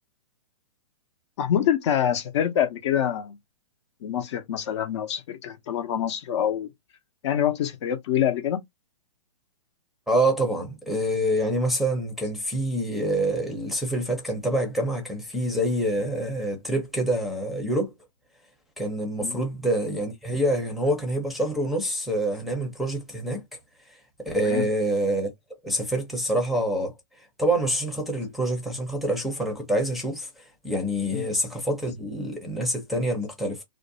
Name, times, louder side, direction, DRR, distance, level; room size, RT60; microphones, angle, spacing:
voice 1, 1.4-3.4 4.0-6.7 7.2-8.6 19.2-19.4 24.5-24.7 31.1-31.3, left 10 dB, 50° left, 0.6 m, -25 dB
voice 2, 10.1-17.9 18.8-23.4 23.9-24.0 24.2-25.3 25.6-26.9 27.4-33.6, right 1 dB, ahead, 0.6 m, -26 dB
2.5 x 2.1 x 2.6 m
hypercardioid pair, 135°, 19 cm